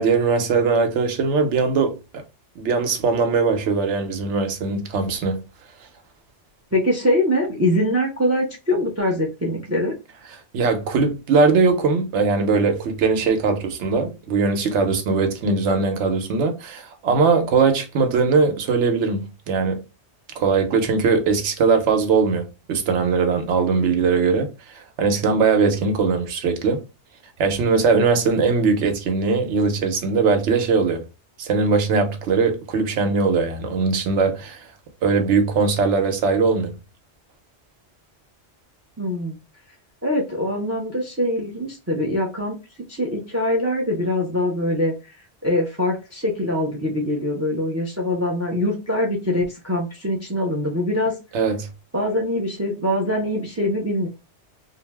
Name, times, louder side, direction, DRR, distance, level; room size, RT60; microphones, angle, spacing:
voice 1, 0.0-2.2 2.6-5.4 10.5-19.8 20.4-24.5 24.7-26.8 27.4-31.0 31.4-34.6 35.0-36.7 51.3-51.7, right 4 dB, 80° right, 1.0 m, -20 dB
voice 2, 6.7-9.9 39.0-39.4 40.0-42.6 42.9-44.9 45.4-51.1 51.9-54.1, left 1 dB, 20° right, 0.4 m, -23 dB
2.7 x 2.0 x 3.2 m
omnidirectional pair, 1.2 m